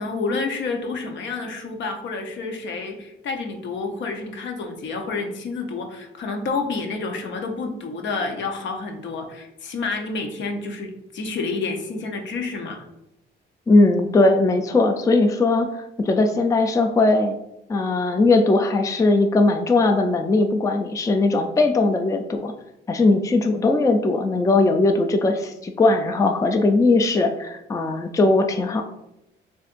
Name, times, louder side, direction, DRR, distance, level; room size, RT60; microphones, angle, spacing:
voice 1, 0.0-12.8, left 3 dB, 65° left, 4 dB, 0.8 m, -29 dB
voice 2, 13.7-17.3 17.7-22.5 22.9-28.8, left 2 dB, 15° left, 5 dB, 0.4 m, -19 dB
6.5 x 2.5 x 2.5 m, 0.86 s
cardioid pair, 90°, 20 cm